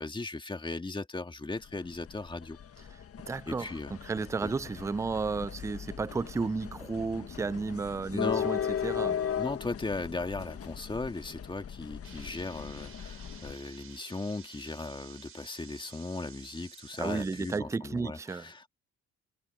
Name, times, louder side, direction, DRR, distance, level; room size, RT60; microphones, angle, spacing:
voice 1, 0.0-2.6 3.5-4.0 4.4-4.5 8.1-8.6 9.4-18.7, left 3 dB, 15° left, 1.8 m, -37 dB
sound 1, 1.6-13.5, left 8 dB, 50° left, 1.6 m, -37 dB
voice 2, 3.3-9.2 17.0-18.5, right 4 dB, 10° right, 0.3 m, -33 dB
sound 2, 12.0-17.6, right 7 dB, 45° right, 5.4 m, -52 dB
cardioid pair, 90°, 30 cm